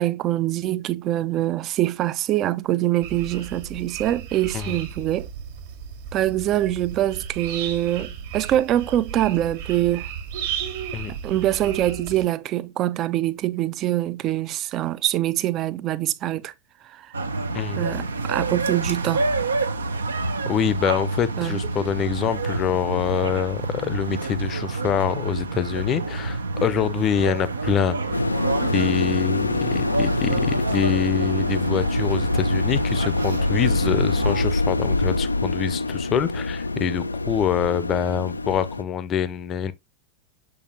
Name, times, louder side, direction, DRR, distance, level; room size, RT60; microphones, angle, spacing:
voice 1, 0.0-5.3 6.1-10.1 11.1-16.5 17.8-19.2 21.4-21.6, right 13 dB, 35° right, 0.5 m, -24 dB
sound 1, 3.0-12.2, right 8 dB, 55° right, 1.6 m, -34 dB
sound 2, 17.1-34.4, right 3 dB, 75° right, 0.7 m, -28 dB
voice 2, 20.5-28.0 28.7-39.7, left 8 dB, 30° left, 0.6 m, -25 dB
sound 3, 28.1-38.8, left 2 dB, 80° left, 0.3 m, -25 dB
6.6 x 5.4 x 2.6 m
figure-of-eight pair, 90°, 0 cm